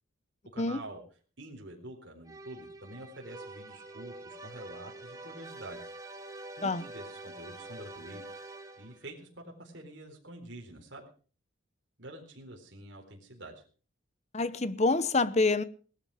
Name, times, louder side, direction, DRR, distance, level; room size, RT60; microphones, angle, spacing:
voice 1, 0.5-1.0 1.4-5.9 6.6-8.4 8.8-11.1 12.0-13.6, right 1 dB, 60° right, 4.0 m, -47 dB
sound 1, 2.2-9.1, right 2 dB, 15° right, 1.8 m, -46 dB
voice 2, 14.3-15.6, left 3 dB, 35° left, 0.8 m, -26 dB
18.0 x 12.5 x 4.9 m
head